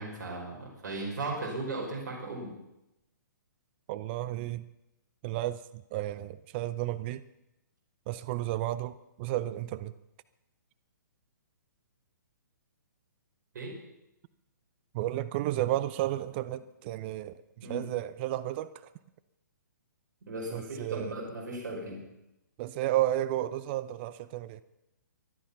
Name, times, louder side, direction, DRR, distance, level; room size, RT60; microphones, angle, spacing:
voice 1, 0.0-2.5 13.5-13.7 17.6-17.8 20.2-22.0, right 2 dB, 60° right, 5.5 m, -37 dB
voice 2, 3.9-4.6 5.2-5.6 5.9-7.2 8.1-9.9 14.9-18.7 20.5-21.1 22.6-24.6, right 14 dB, 35° right, 0.6 m, -32 dB
24.0 x 10.0 x 5.8 m
hypercardioid pair, 135°, 11 cm